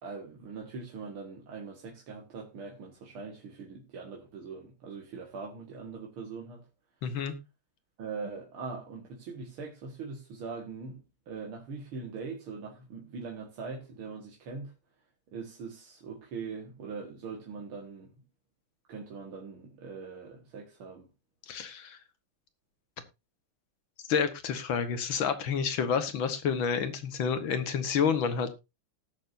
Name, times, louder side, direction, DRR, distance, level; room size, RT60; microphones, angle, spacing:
voice 1, 0.0-6.7 8.0-14.7 15.3-18.1 18.9-21.1, right 4 dB, 90° right, 2.6 m, -42 dB
voice 2, 7.0-7.3 21.5-22.0 24.1-28.5, left 6 dB, 75° left, 2.0 m, -29 dB
18.5 x 6.8 x 2.6 m
omnidirectional pair, 2.3 m